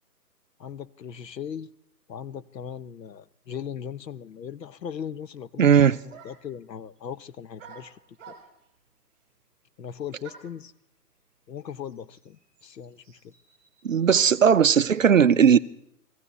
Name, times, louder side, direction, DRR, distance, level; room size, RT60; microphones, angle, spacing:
voice 1, 0.6-1.7 2.1-8.0 8.3-8.4 9.8-10.7 11.5-13.3, left 8 dB, 85° left, 0.9 m, -38 dB
voice 2, 5.6-6.0 13.8-15.6, right 7 dB, 55° right, 0.5 m, -17 dB
sound 1, 6.1-6.6 7.6-8.7 10.2-10.6 11.6-11.7 11.9-14.5, right 6 dB, 15° right, 2.8 m, -49 dB
17.5 x 15.5 x 4.1 m
hypercardioid pair, 170°, 49 cm